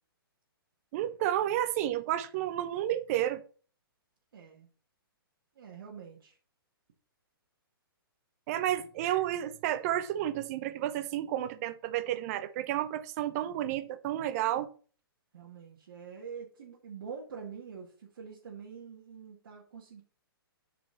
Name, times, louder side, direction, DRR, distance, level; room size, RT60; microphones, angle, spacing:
voice 1, 0.9-3.4 8.5-14.7, right 12 dB, 40° right, 0.8 m, -31 dB
voice 2, 4.3-4.7 5.6-6.4 15.3-20.0, right 6 dB, 60° right, 2.1 m, -45 dB
8.5 x 5.1 x 4.2 m
figure-of-eight pair, 125°, 13 cm